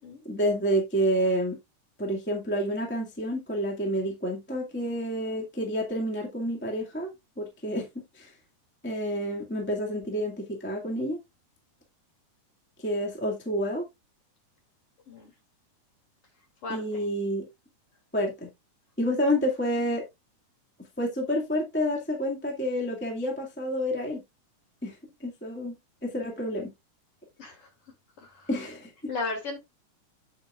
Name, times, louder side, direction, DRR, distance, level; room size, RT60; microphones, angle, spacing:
voice 1, 0.2-1.6 2.0-7.1 7.4-8.3 8.8-11.2 12.8-13.8 16.7-17.4 18.1-18.5 19.0-20.0 21.0-24.2 24.8-24.9 25.2-25.7 26.0-26.7 28.5-28.9, equal, 5° left, 1.4 m, -29 dB
voice 2, 16.6-17.0 27.4-27.7 28.2-28.5 29.1-29.6, left 3 dB, 50° left, 3.4 m, -35 dB
8.6 x 8.3 x 2.4 m
omnidirectional pair, 3.5 m